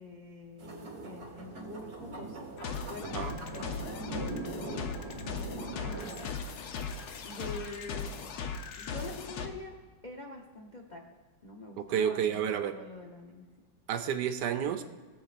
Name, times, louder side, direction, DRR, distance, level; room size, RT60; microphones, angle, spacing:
voice 1, 0.0-5.0 5.3-6.2 7.2-8.2 8.8-9.8 10.0-11.0 11.4-13.5, left 2 dB, 80° left, 0 dB, 0.4 m, -46 dB
sound 1, 0.6-6.3, right 3 dB, 35° right, 1.3 m, -41 dB
sound 2, 2.6-9.5, left 5 dB, 65° left, 1.2 m, -38 dB
voice 2, 11.8-12.7 13.9-14.8, right 8 dB, 75° right, 9 dB, 1.1 m, -30 dB
19.5 x 7.2 x 2.5 m, 1.4 s
omnidirectional pair, 2.0 m